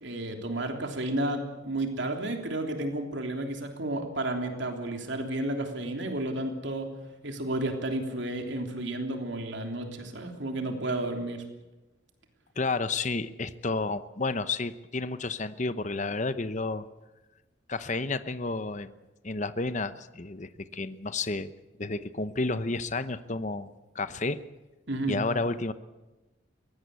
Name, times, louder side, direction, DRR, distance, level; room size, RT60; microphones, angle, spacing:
voice 1, 0.0-6.9 7.2-11.4 24.9-25.2, right 1 dB, 65° right, 4 dB, 3.3 m, -32 dB
voice 2, 12.6-16.9 17.7-18.9 19.2-21.5 21.8-24.4 25.1-25.7, left 3 dB, 40° left, 12 dB, 0.9 m, -31 dB
22.5 x 17.5 x 8.2 m, 1.1 s
head